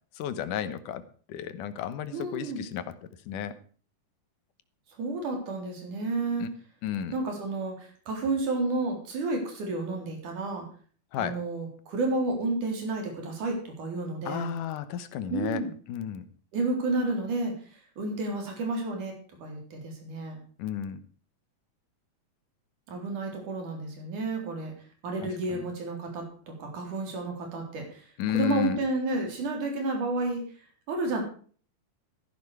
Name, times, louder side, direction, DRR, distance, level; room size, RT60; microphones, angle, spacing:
voice 1, 0.1-1.0 1.3-2.9 3.3-3.5 6.4-6.5 6.8-7.2 11.1-11.4 14.3-15.6 15.9-16.3 20.6-21.0 25.2-25.6 28.2-28.8, left 10 dB, 75° left, 12 dB, 2.5 m, -32 dB
voice 2, 2.1-2.6 5.0-6.5 7.1-10.7 11.2-14.5 15.3-15.7 16.5-19.1 19.4-20.4 22.9-24.7 25.0-30.4 30.9-31.2, right 2 dB, 65° right, 2 dB, 5.2 m, -31 dB
14.0 x 11.0 x 4.8 m, 0.43 s
omnidirectional pair, 3.8 m